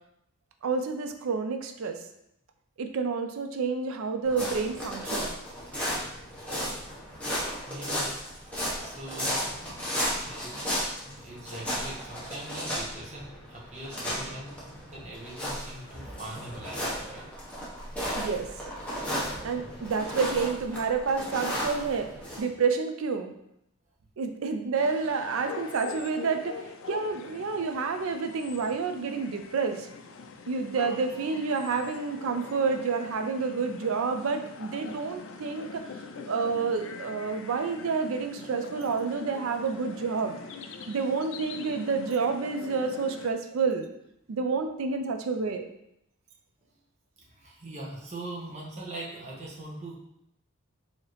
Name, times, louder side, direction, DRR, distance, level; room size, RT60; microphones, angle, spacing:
voice 1, 0.6-2.0 2.8-5.3 18.2-18.5 19.4-22.1 22.4-23.3 24.2-26.6 26.9-29.9 30.5-35.9 36.3-40.3 40.9-43.9 44.3-45.6, right 5 dB, 75° right, 6 dB, 0.4 m, -29 dB
sound 1, 4.2-22.4, equal, 5° left, 0.9 m, -34 dB
voice 2, 7.7-10.6 11.2-17.3 47.2-49.9, right 1 dB, 30° right, -4 dB, 0.9 m, -42 dB
sound 2, 24.7-43.3, left 5 dB, 65° left, 0.4 m, -43 dB
4.7 x 2.8 x 3.1 m, 0.80 s
head